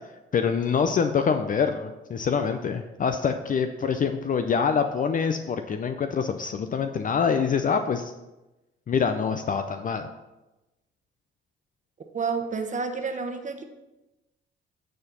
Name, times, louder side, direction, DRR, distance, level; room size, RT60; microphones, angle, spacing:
voice 1, 0.3-8.1 8.9-10.1, left 6 dB, 45° left, 8 dB, 0.5 m, -25 dB
voice 2, 12.1-13.6, right 5 dB, 40° right, 5 dB, 1.1 m, -29 dB
9.4 x 4.2 x 5.5 m, 1.0 s
cardioid pair, 90°, 20 cm